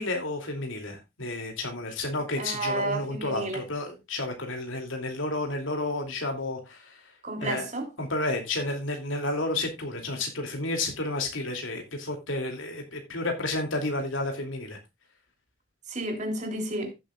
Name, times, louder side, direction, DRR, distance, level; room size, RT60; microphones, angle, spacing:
voice 1, 0.0-7.0 7.4-7.7 8.0-14.8, left 2 dB, 80° left, 2.6 m, -31 dB
voice 2, 2.3-3.6 7.2-7.9 15.9-16.9, right 2 dB, 35° right, 3.1 m, -31 dB
15.5 x 8.3 x 2.3 m
head